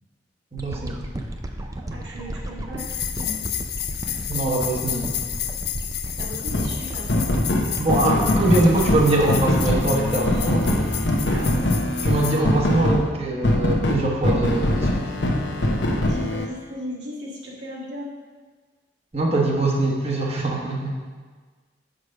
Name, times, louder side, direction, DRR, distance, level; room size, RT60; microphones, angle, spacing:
voice 1, 0.5-1.0 4.1-5.1 7.8-10.7 12.0-15.0 19.1-21.0, right 2 dB, 35° right, -2 dB, 1.2 m, -23 dB
sound 1, 0.6-12.9 13.4-13.5, right 1 dB, 20° right, 0.5 m, -34 dB
voice 2, 1.9-3.4 6.2-7.3 11.3-11.5 14.3-14.4 16.1-18.1, equal, 85° right, -5 dB, 1.8 m, -36 dB
sound 2, 2.8-12.4, left 12 dB, 60° left, 0.4 m, -32 dB
sound 3, 6.5-6.7 7.1-13.0 13.4-16.5, left 1 dB, 80° left, 0.9 m, -22 dB
6.6 x 4.8 x 6.5 m, 1.4 s
head